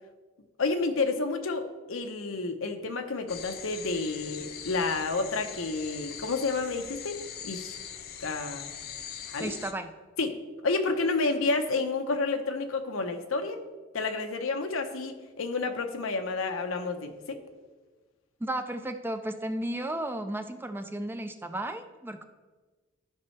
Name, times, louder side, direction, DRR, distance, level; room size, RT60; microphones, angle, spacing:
voice 1, 0.6-7.8 8.2-8.7 9.3-9.5 10.2-10.4 10.6-13.6 13.9-17.4, left 3 dB, 85° left, 6 dB, 0.8 m, -30 dB
sound 1, 3.3-9.7, left 8 dB, 50° left, 0.6 m, -42 dB
voice 2, 9.4-9.9 18.4-22.2, right 1 dB, 10° right, 8 dB, 0.3 m, -34 dB
13.0 x 5.4 x 3.2 m, 1.3 s
head